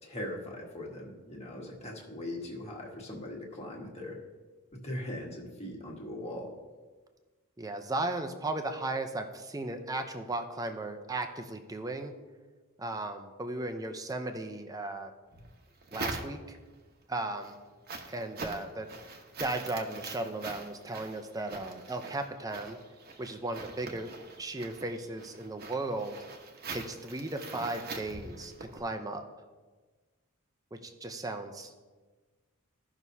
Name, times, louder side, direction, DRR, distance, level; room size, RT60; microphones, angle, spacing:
voice 1, 0.0-4.2 4.8-6.5, left 1 dB, 30° left, -2 dB, 1.6 m, -40 dB
voice 2, 7.6-12.1 12.8-15.1 15.9-16.6 17.1-17.6 18.1-18.9 19.4-22.8 23.2-24.1 24.4-26.2 26.7-29.2 30.7-31.7, right 2 dB, 15° right, 6 dB, 0.6 m, -36 dB
sound 1, 15.3-16.7 17.2-28.8, right 3 dB, 45° right, 1.0 m, -43 dB
16.0 x 6.0 x 2.8 m, 1.4 s
head